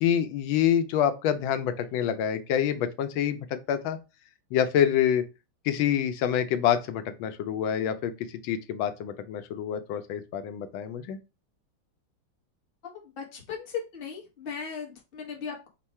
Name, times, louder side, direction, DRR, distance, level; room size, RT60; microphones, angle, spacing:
voice 1, 0.0-4.0 4.5-5.2 5.6-8.1 8.4-11.2, left 9 dB, 90° left, 1.4 m, -26 dB
voice 2, 13.0-15.7, left 6 dB, 40° left, 1.0 m, -37 dB
4.5 x 2.3 x 4.2 m
omnidirectional pair, 2.1 m